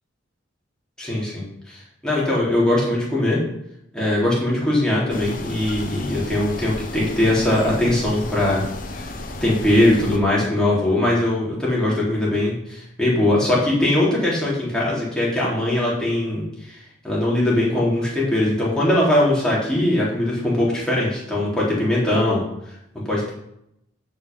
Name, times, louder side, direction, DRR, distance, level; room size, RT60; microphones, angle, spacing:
voice 1, 1.0-3.4 3.9-8.6 9.0-9.1 9.4-16.8 17.0-22.4 23.1-23.3, left 1 dB, 5° left, -6 dB, 3.9 m, -21 dB
sound 1, 5.1-10.2, left 2 dB, 45° left, 1.2 m, -33 dB
13.0 x 5.9 x 5.6 m, 0.78 s
head